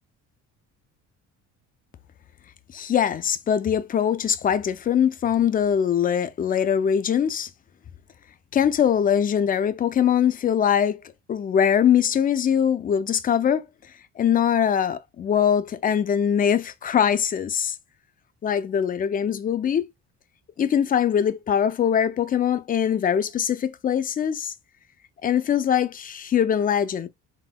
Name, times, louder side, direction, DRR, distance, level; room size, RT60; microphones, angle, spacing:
voice 1, 2.7-7.5 8.5-11.0 11.3-13.7 14.2-17.8 18.4-19.9 20.6-24.5 25.2-27.1, left 8 dB, 30° left, 0.4 m, -22 dB
4.2 x 3.6 x 2.2 m
cardioid pair, 135°, 31 cm